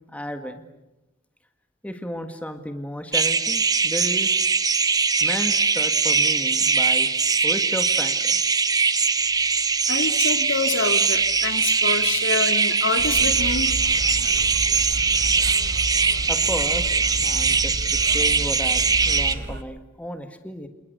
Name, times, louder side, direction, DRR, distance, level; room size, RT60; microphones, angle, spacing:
voice 1, 0.1-0.6 1.8-4.4 5.2-7.1 7.4-8.4 16.3-20.7, equal, 5° left, 6 dB, 1.9 m, -33 dB
sound 1, 3.1-19.3, right 5 dB, 20° right, 1.1 m, -21 dB
voice 2, 9.9-13.7, left 4 dB, 70° left, 7 dB, 2.3 m, -27 dB
sound 2, 13.0-19.6, right 1 dB, 60° right, 1.4 m, -32 dB
29.5 x 28.0 x 6.9 m, 0.99 s
head